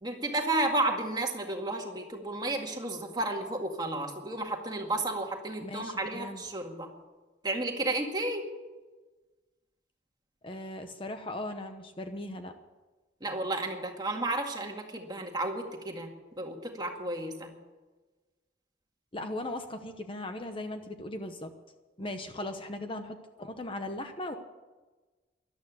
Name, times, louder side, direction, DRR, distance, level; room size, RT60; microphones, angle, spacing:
voice 1, 0.0-6.9 7.4-8.4 13.2-16.1 16.4-17.5 22.0-22.1, right 2 dB, 25° right, 2 dB, 2.0 m, -32 dB
voice 2, 5.6-6.4 10.4-12.5 19.1-21.5 22.0-24.3, left 1 dB, 30° left, 7 dB, 0.9 m, -38 dB
13.5 x 12.0 x 8.4 m, 1.2 s
head